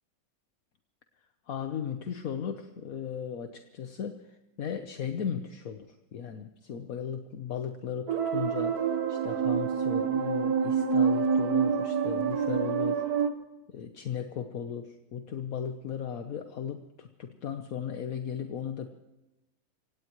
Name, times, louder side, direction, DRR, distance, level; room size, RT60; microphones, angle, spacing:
voice 1, 1.5-8.7 9.1-13.0 13.7-18.9, left 8 dB, 70° left, 7 dB, 1.4 m, -36 dB
sound 1, 8.1-13.3, right 6 dB, 80° right, 1.7 m, -27 dB
26.5 x 17.5 x 3.1 m, 1.0 s
omnidirectional pair, 1.6 m